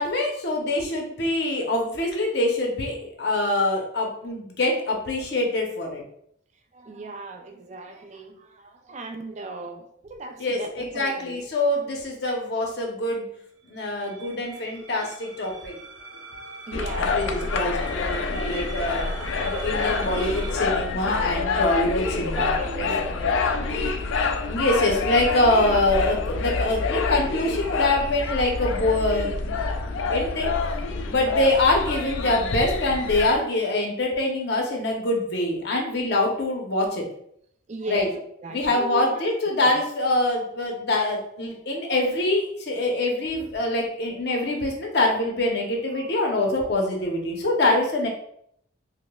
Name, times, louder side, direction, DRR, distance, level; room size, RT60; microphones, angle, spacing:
voice 1, 0.0-6.0 10.4-13.3 13.7-15.7 17.0-19.1 19.4-22.5 22.8-22.9 24.5-29.6 30.1-30.5 31.1-37.0 37.9-38.1 38.5-48.1, left 2 dB, 55° left, 0 dB, 0.7 m, -24 dB
voice 2, 6.7-11.4 14.8-14.9 15.7-15.8 16.7-17.4 22.4-23.9 37.7-39.8 45.9-46.1, right 2 dB, 35° right, 6 dB, 0.3 m, -37 dB
sound 1, 13.9-20.5, right 3 dB, 90° right, 0.7 m, -41 dB
sound 2, 16.7-33.4, left 4 dB, 80° left, 0.4 m, -27 dB
4.9 x 2.1 x 2.2 m, 0.70 s
head